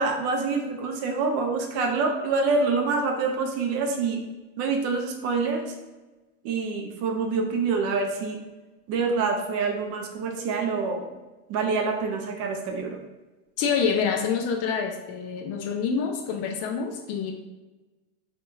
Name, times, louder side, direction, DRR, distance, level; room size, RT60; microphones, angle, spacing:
voice 1, 0.0-4.2 4.6-5.7 6.4-8.4 8.9-11.1 11.5-13.0, right 4 dB, 45° right, 4 dB, 0.5 m, -26 dB
voice 2, 13.6-17.3, left 6 dB, 45° left, 3 dB, 0.4 m, -27 dB
3.6 x 2.3 x 2.5 m, 1.2 s
supercardioid pair, 135°, 36 cm